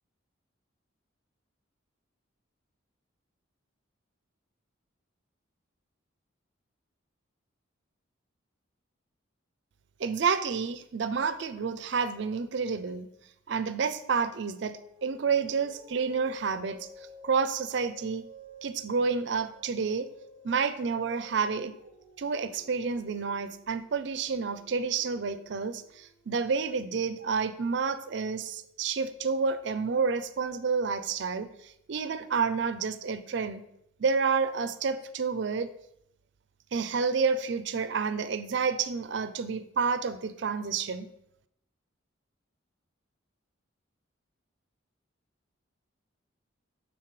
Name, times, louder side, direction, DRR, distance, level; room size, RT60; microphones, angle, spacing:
voice 1, 10.0-13.1 13.5-16.9 17.2-18.2 18.6-20.1 20.4-21.7 22.2-33.6 34.0-35.7 36.7-41.1, right 5 dB, 55° right, 12 dB, 0.4 m, -29 dB
sound 1, 14.4-27.2, equal, 55° left, 2.0 m, -54 dB
11.5 x 4.0 x 3.2 m, 0.78 s
head